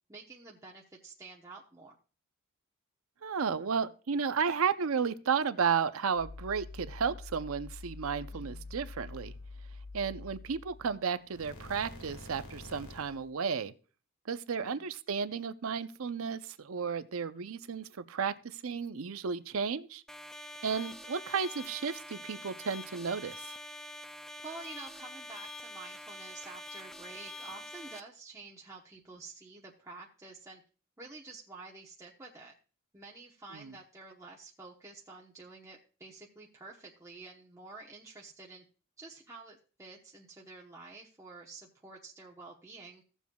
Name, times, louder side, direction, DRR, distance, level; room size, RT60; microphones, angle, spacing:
voice 1, 0.1-1.9 8.3-8.8 14.6-14.9 24.4-30.6 31.0-32.5 32.9-38.6 39.0-43.0, right 3 dB, 15° right, 0.9 m, -49 dB
voice 2, 3.2-9.3 9.9-13.7 14.3-20.0 20.6-23.4 33.5-33.7, right 6 dB, 70° right, 0.6 m, -33 dB
sound 1, 6.1-11.0 11.2-13.3, left 2 dB, 75° left, 1.8 m, -46 dB
sound 2, 20.1-28.0, left 1 dB, ahead, 0.3 m, -45 dB
16.5 x 7.2 x 2.3 m
head